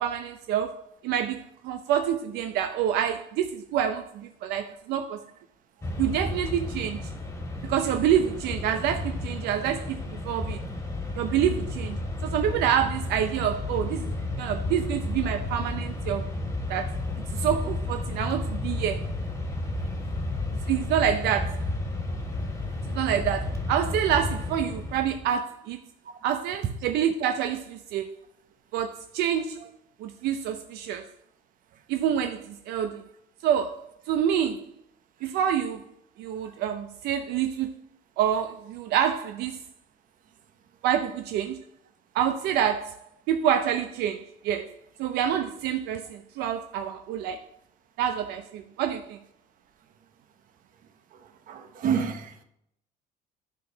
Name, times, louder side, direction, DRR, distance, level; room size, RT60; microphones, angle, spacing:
voice 1, 0.0-5.2 6.0-7.1 7.6-10.6 11.2-16.4 16.7-17.0 17.3-19.1 20.7-21.6 22.9-25.8 26.2-28.2 28.7-29.6 30.0-31.1 31.9-33.0 33.4-34.7 35.2-35.8 36.2-37.7 38.2-39.6 40.8-41.6 42.1-43.0 43.3-44.7 45.0-47.4 48.0-49.2, right 9 dB, 85° right, 0.6 m, -27 dB
Mechanisms, 5.8-25.3, left 2 dB, 20° left, 1.7 m, -32 dB
voice 2, 51.5-52.4, right 7 dB, 55° right, 1.1 m, -28 dB
10.5 x 6.1 x 3.9 m
cardioid pair, 135°, 16 cm